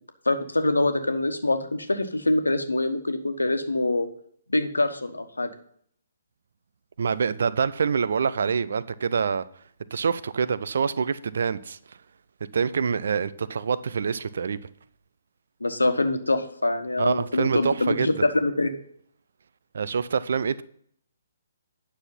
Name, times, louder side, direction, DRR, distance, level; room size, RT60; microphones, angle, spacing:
voice 1, 0.2-4.1 4.5-5.5 15.6-18.7, left 2 dB, 75° left, 1.2 m, -24 dB
voice 2, 7.0-9.4 9.9-11.8 12.5-14.6 17.0-18.1 19.7-20.6, right 6 dB, 55° right, 0.5 m, -26 dB
9.8 x 6.4 x 5.6 m
figure-of-eight pair, 130°, 0 cm